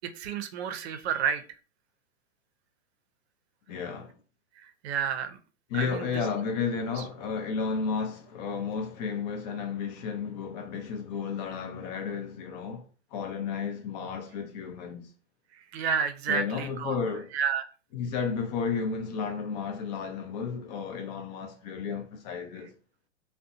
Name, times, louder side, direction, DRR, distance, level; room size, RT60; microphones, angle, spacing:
voice 1, 0.2-1.4 4.6-5.4 5.7-6.1 7.0-7.1 15.5-17.0 17.3-17.7, right 7 dB, 60° right, 0.5 m, -30 dB
voice 2, 3.7-4.1 5.7-15.1 16.3-17.3 17.9-22.7, left 5 dB, 35° left, 0.5 m, -33 dB
2.6 x 2.1 x 2.5 m
hypercardioid pair, 135°, 37 cm